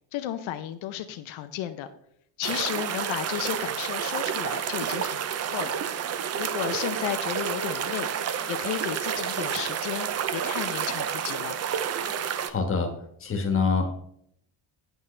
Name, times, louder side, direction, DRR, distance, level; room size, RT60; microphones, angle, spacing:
voice 1, 0.1-1.9 2.4-5.2 5.5-5.7 6.4-8.1 8.5-11.6, left 11 dB, 75° left, 8 dB, 0.7 m, -33 dB
sound 1, 2.4-12.5, right 8 dB, 35° right, 0.4 m, -30 dB
voice 2, 12.5-12.9 13.2-13.8, left 4 dB, 25° left, 4 dB, 1.3 m, -25 dB
9.2 x 8.1 x 3.2 m, 0.71 s
cardioid pair, 165°, 47 cm